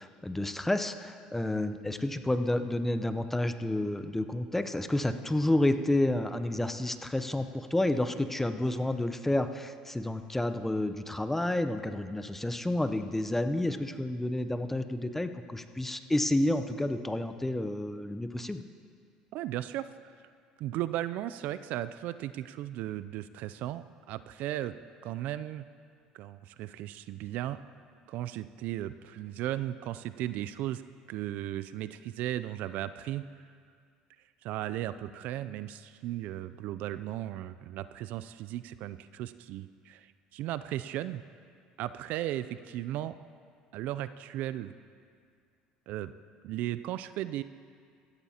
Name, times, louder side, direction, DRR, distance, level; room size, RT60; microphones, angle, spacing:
voice 1, 0.0-18.6, left 1 dB, 10° left, 10 dB, 0.7 m, -30 dB
voice 2, 19.3-19.9 20.6-24.7 25.0-25.7 26.1-27.6 28.1-30.8 31.1-33.5 34.4-41.2 41.8-43.2 43.7-44.7 45.9-46.1 46.4-47.4, right 13 dB, 65° right, 13 dB, 0.4 m, -36 dB
17.0 x 14.0 x 2.9 m, 2.2 s
hypercardioid pair, 75°, 3 cm